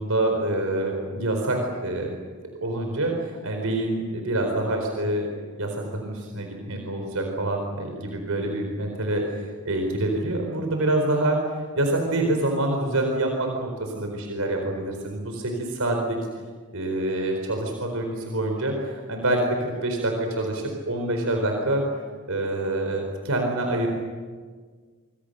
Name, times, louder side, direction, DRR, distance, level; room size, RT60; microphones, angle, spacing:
voice 1, 0.0-2.1 2.6-5.3 5.6-11.4 11.7-16.2 16.7-21.8 22.3-23.9, right 1 dB, 80° right, 2 dB, 4.4 m, -26 dB
25.5 x 25.5 x 6.8 m, 1.5 s
head